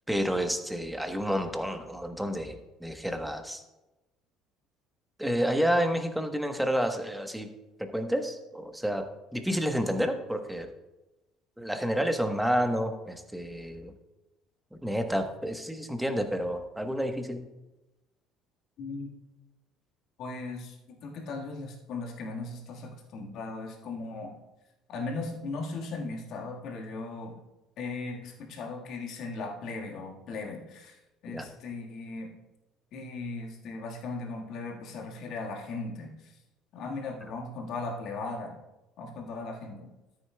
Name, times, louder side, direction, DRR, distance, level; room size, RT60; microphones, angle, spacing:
voice 1, 0.1-3.6 5.2-7.5 7.8-9.1 9.3-10.7 11.6-13.9 14.8-17.5 31.3-31.5, equal, 5° right, 6 dB, 1.2 m, -30 dB
voice 2, 18.8-19.1 20.2-24.3 24.9-27.3 27.8-32.3 32.9-36.4 36.7-38.5 39.0-39.9, left 3 dB, 60° left, 1 dB, 1.7 m, -38 dB
13.0 x 7.5 x 2.3 m, 1.0 s
hypercardioid pair, 60°, 0 cm